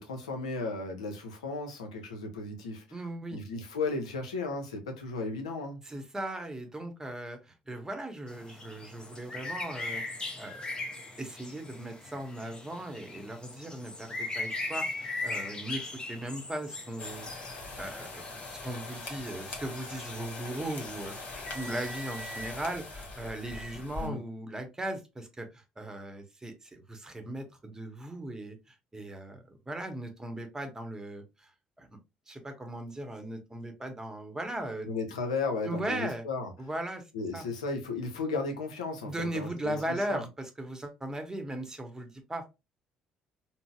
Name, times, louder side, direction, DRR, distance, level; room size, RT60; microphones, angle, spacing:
voice 1, 0.0-2.8 3.3-5.8 24.0-24.2 34.9-36.5 37.1-40.2, left 3 dB, 85° left, 0.6 m, -35 dB
voice 2, 2.9-3.4 5.9-10.0 10.4-10.8 11.2-15.8 16.1-17.3 17.8-18.2 18.5-21.1 21.5-31.5 31.8-31.9 32.3-34.9 35.6-36.2 36.6-37.0 37.3-37.4 39.0-42.4, right 1 dB, 15° right, 0.9 m, -38 dB
sound 1, 8.3-21.9, left 2 dB, 25° left, 0.8 m, -40 dB
sound 2, 17.0-24.1, left 2 dB, 50° left, 1.1 m, -41 dB
3.8 x 2.0 x 2.3 m
hypercardioid pair, 50°, 3 cm